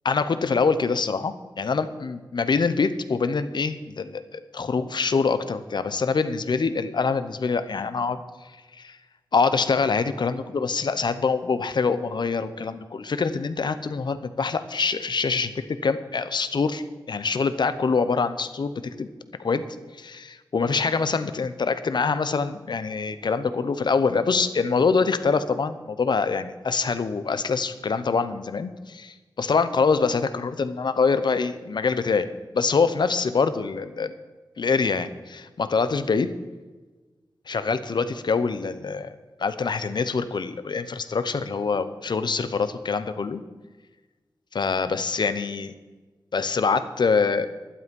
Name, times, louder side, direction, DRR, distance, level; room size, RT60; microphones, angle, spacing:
voice 1, 0.0-8.2 8.8-9.0 9.3-19.1 19.4-19.6 20.0-32.3 32.5-34.1 34.6-36.3 37.5-39.1 39.4-43.4 44.5-45.7 46.3-47.5, left 4 dB, 65° left, 12 dB, 0.9 m, -25 dB
12.0 x 11.5 x 5.4 m, 1.3 s
wide cardioid pair, 75°, 8 cm